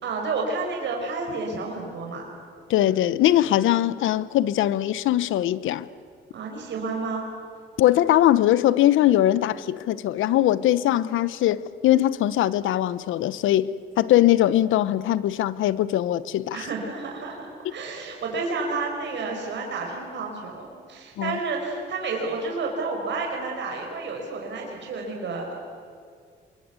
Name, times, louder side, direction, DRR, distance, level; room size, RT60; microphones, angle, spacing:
voice 1, 0.0-2.3 6.3-7.3 16.5-25.5, right 3 dB, 65° right, 1 dB, 5.1 m, -30 dB
voice 2, 2.7-5.9 7.8-13.7 14.0-16.6 21.2-21.4, left 13 dB, 80° left, 18 dB, 0.9 m, -21 dB
27.0 x 22.5 x 8.2 m, 2.2 s
cardioid pair, 90°, 20 cm